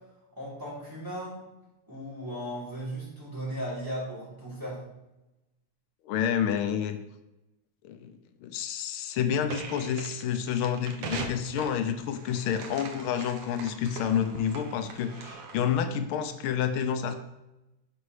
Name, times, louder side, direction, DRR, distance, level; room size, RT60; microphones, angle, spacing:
voice 1, 0.3-1.4 1.9-4.8, equal, 10° right, -8 dB, 3.3 m, -36 dB
voice 2, 6.0-7.0 7.8-17.2, left 8 dB, 90° left, 9 dB, 1.5 m, -29 dB
sound 1, 9.5-15.8, right 4 dB, 70° right, 1.5 m, -41 dB
11.5 x 5.4 x 3.2 m, 0.96 s
omnidirectional pair, 2.3 m